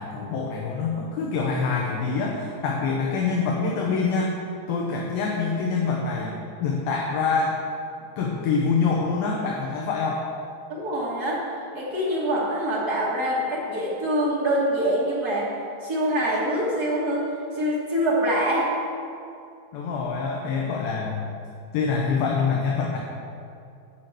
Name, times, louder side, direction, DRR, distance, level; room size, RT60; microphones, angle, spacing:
voice 1, 0.0-4.3 4.7-7.6 8.2-10.2 19.7-21.4 21.7-23.0, left 4 dB, 75° left, -1 dB, 2.4 m, -25 dB
voice 2, 10.7-11.4 11.7-15.5 15.8-17.3 17.5-18.7, equal, 75° right, -7 dB, 0.8 m, -24 dB
9.1 x 5.8 x 7.9 m, 2.5 s
omnidirectional pair, 4.9 m